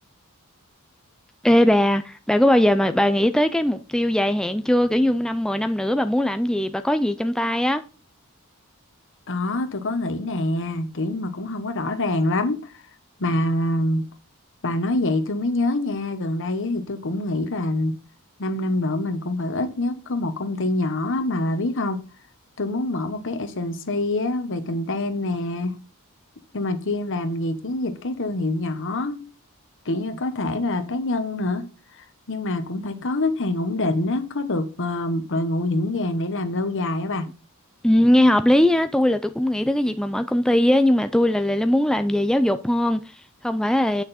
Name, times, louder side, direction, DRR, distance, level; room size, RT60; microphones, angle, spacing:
voice 1, 1.4-7.8 37.8-44.0, left 1 dB, 5° left, 0.4 m, -20 dB
voice 2, 9.3-12.7 13.2-14.0 14.6-17.9 18.4-22.0 22.6-25.8 26.5-29.2 29.8-31.7 32.3-37.3, left 2 dB, 60° left, 1.2 m, -25 dB
9.0 x 6.1 x 4.2 m
head